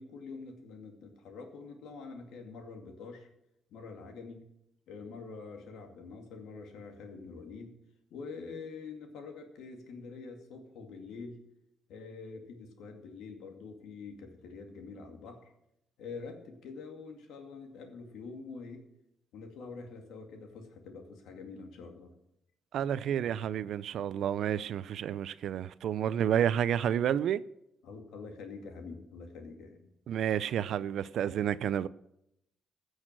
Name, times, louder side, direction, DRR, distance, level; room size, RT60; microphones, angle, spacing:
voice 1, 0.0-3.3 3.7-4.4 4.9-7.7 8.1-11.4 11.9-15.5 16.0-18.8 19.3-22.1 27.8-29.9, left 4 dB, 85° left, 2.3 m, -46 dB
voice 2, 22.7-27.4 30.1-31.9, right 9 dB, 70° right, 0.5 m, -30 dB
15.0 x 6.4 x 7.5 m
cardioid pair, 90°, 0 cm